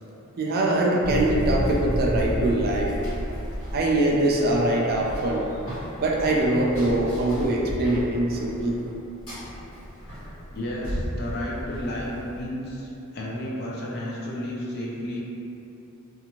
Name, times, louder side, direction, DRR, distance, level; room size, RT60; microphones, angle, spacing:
voice 1, 0.4-2.9 3.7-5.4 6.0-8.8, right 1 dB, 45° right, -2 dB, 0.4 m, -23 dB
Run, 1.0-12.4, equal, 85° left, 1.4 m, -32 dB
voice 2, 10.5-15.2, left 1 dB, 50° left, -4 dB, 0.5 m, -32 dB
2.6 x 2.5 x 2.9 m, 2.8 s
head